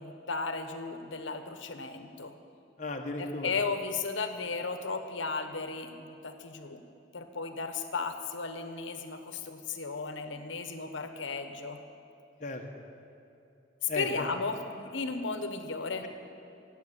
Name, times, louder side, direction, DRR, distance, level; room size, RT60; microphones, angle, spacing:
voice 1, 0.0-2.3 3.2-6.8 7.1-11.8 13.8-16.0, left 4 dB, 75° left, 7 dB, 1.1 m, -35 dB
voice 2, 2.8-3.5 12.4-12.6 13.9-14.3 16.0-16.1, left 2 dB, 40° left, 2 dB, 1.2 m, -35 dB
16.5 x 8.1 x 8.8 m, 2.8 s
head